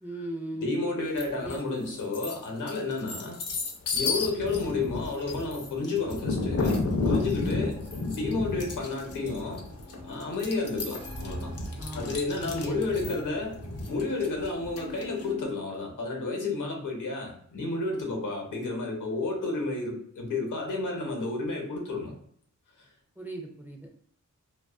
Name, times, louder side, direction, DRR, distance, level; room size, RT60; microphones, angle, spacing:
voice 1, 0.0-0.7 1.4-1.9 11.8-13.2 23.2-23.9, right 1 dB, 5° right, 0 dB, 0.3 m, -39 dB
voice 2, 0.6-3.4 3.9-9.6 10.0-11.5 11.9-13.6 13.9-22.1, left 3 dB, 75° left, 0 dB, 0.8 m, -31 dB
sound 1, 1.2-1.6 2.0-15.2, left 3 dB, 50° left, 0.5 m, -32 dB
sound 2, 7.1-15.5, equal, 70° right, 0.7 m, -44 dB
2.3 x 2.3 x 2.3 m, 0.63 s
wide cardioid pair, 125°, 31 cm